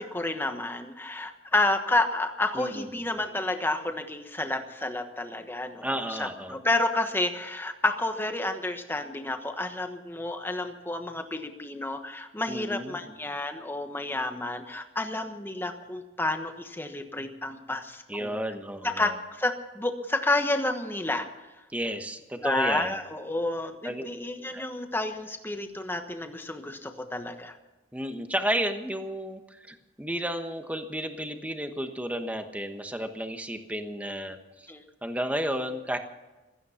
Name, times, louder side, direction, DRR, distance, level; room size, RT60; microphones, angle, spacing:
voice 1, 0.0-18.4 18.8-21.3 22.4-27.6 34.7-34.8, left 2 dB, 10° left, 6 dB, 1.2 m, -30 dB
voice 2, 2.5-3.0 5.8-6.6 12.5-13.1 18.1-19.1 21.7-23.0 23.8-24.0 24.4-24.6 27.9-34.7 35.0-36.0, equal, 5° right, 6 dB, 1.2 m, -32 dB
16.5 x 14.5 x 5.8 m, 1.1 s
head